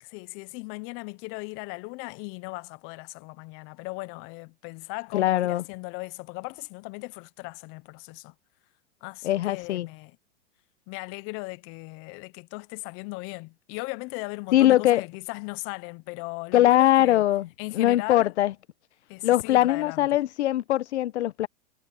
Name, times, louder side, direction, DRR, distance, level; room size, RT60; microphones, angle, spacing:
voice 1, 0.0-8.3 9.0-10.2 10.9-17.2 17.6-18.3 19.1-20.2, left 27 dB, 35° left, 0.7 m, -37 dB
voice 2, 5.1-5.6 9.2-9.9 14.5-15.0 16.5-17.5 17.7-18.5 19.2-21.5, left 14 dB, 75° left, 0.9 m, -21 dB
hypercardioid pair, 125°, 34 cm